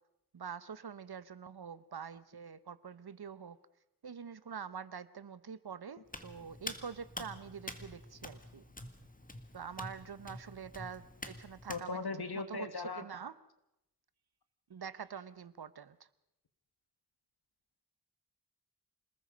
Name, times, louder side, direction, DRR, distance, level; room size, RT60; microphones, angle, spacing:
voice 1, 0.3-3.6 4.0-8.6 9.5-12.0 12.3-13.3 14.7-16.1, right 6 dB, 85° right, 16 dB, 1.0 m, -45 dB
Hands, 6.1-11.8, left 1 dB, 20° left, 1.8 m, -47 dB
voice 2, 11.7-13.0, left 4 dB, 80° left, 10 dB, 1.8 m, -38 dB
27.0 x 20.0 x 5.2 m, 0.86 s
wide cardioid pair, 70°, 37 cm